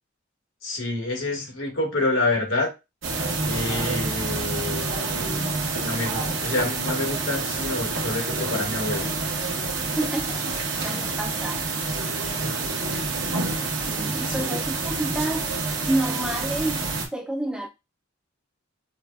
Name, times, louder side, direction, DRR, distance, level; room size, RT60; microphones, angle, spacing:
voice 1, 0.6-2.7 3.5-5.5 5.8-9.1 14.3-14.5, left 2 dB, 80° left, 1.4 m, -28 dB
sound 1, 3.0-17.1, right 3 dB, 70° right, 0.9 m, -28 dB
voice 2, 10.0-11.7 13.9-15.6 15.9-16.9 17.1-17.7, right 1 dB, 5° right, 0.3 m, -29 dB
4.7 x 2.2 x 2.2 m
head